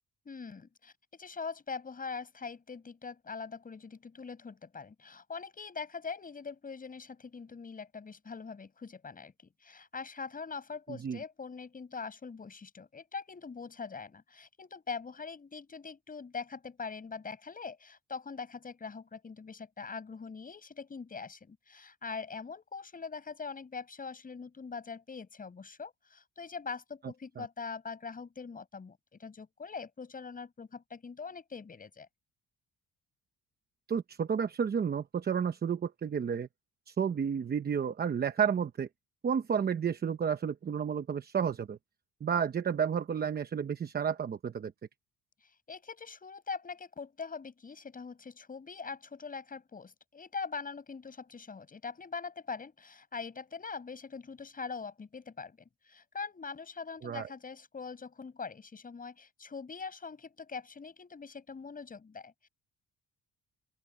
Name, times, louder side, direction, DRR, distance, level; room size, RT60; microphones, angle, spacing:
voice 1, 0.3-9.3 9.6-32.1 45.4-55.6 55.8-62.5, left 5 dB, 25° left, 7.4 m, -43 dB
voice 2, 33.9-36.5 36.9-38.9 39.2-41.8 42.2-44.7 57.0-57.3, right 7 dB, 30° right, 0.9 m, -31 dB
open air
cardioid pair, 150°, 32 cm